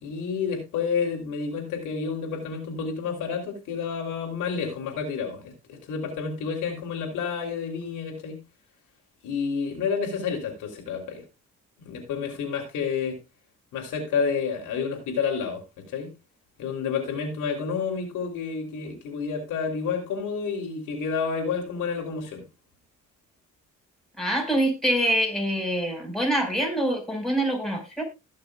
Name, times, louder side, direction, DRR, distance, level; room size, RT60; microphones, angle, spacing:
voice 1, 0.0-8.4 9.2-11.2 11.8-13.2 13.7-16.1 16.6-22.4, left 6 dB, 85° left, 3.4 m, -30 dB
voice 2, 24.2-28.0, right 1 dB, ahead, 5.0 m, -25 dB
19.5 x 6.7 x 2.4 m
cardioid pair, 90°, 30 cm